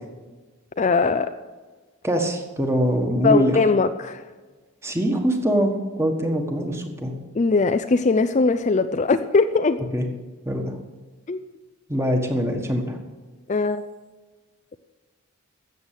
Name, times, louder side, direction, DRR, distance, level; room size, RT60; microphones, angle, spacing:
voice 1, 0.8-1.3 3.2-4.3 7.3-9.8 11.3-11.4 13.5-13.8, left 4 dB, 30° left, 9 dB, 0.4 m, -20 dB
voice 2, 2.0-3.6 4.8-7.1 9.9-10.0 10.4-10.8 11.9-13.0, equal, 10° right, 3 dB, 1.4 m, -23 dB
13.5 x 7.8 x 8.2 m, 1.3 s
head